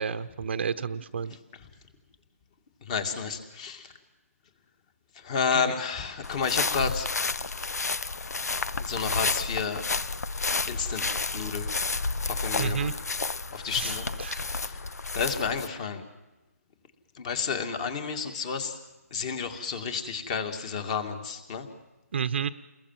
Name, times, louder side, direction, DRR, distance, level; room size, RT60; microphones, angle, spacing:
voice 1, 0.0-1.4 5.5-5.6 12.6-12.9 13.8-13.9 14.2-14.4 22.1-22.5, right 7 dB, 45° right, 12 dB, 1.0 m, -30 dB
voice 2, 2.8-3.9 5.2-7.1 8.8-9.8 10.6-11.0 11.3-11.7 12.3-12.9 13.5-14.1 14.5-14.8 15.1-16.0 17.2-18.8 19.1-21.7, left 6 dB, 25° left, 8 dB, 2.5 m, -31 dB
sound 1, 6.2-15.7, left 3 dB, 85° left, 1.0 m, -31 dB
29.5 x 22.0 x 7.7 m, 1.1 s
hypercardioid pair, 165°, 8 cm